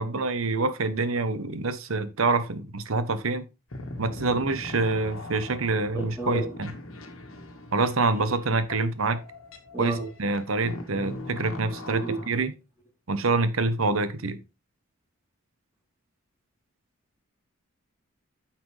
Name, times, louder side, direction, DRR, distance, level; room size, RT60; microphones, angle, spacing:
voice 1, 0.0-3.4 4.0-6.7 7.7-9.2 9.8-12.5 13.1-14.4, right 3 dB, 75° right, 0.9 m, -26 dB
sound 1, 3.7-12.3, left 2 dB, 75° left, 1.6 m, -40 dB
voice 2, 5.9-6.5 9.7-10.1 11.9-12.2, right 3 dB, 10° right, 3.2 m, -32 dB
9.1 x 5.8 x 3.2 m
head